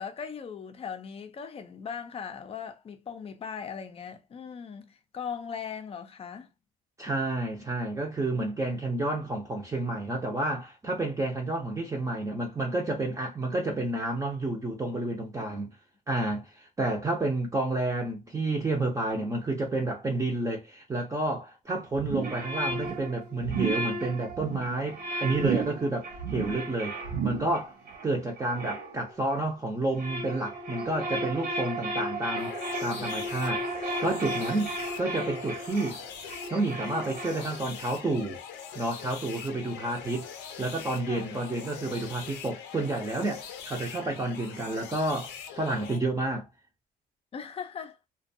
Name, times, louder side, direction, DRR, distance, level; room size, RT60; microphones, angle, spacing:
voice 1, 0.0-6.5 15.4-15.6 41.1-41.3 47.3-48.0, left 7 dB, 35° left, 0.5 m, -39 dB
voice 2, 7.0-15.8 16.1-27.0 27.2-27.8 28.0-33.6 34.0-36.0 36.5-38.4 38.7-40.3 40.6-46.5, right 2 dB, 20° right, 0.6 m, -30 dB
sound 1, 21.9-22.4 22.7-23.1 23.4-23.9 24.3-24.7 25.3-25.9 26.1-26.6 27.0-27.6 27.9-28.0, right 8 dB, 90° right, 0.7 m, -33 dB
sound 2, 22.2-29.5 29.8-37.8, right 1 dB, 65° right, 0.9 m, -35 dB
sound 3, 32.4-46.0, left 7 dB, 90° left, 0.6 m, -42 dB
2.5 x 2.2 x 2.6 m
cardioid pair, 110°, 17 cm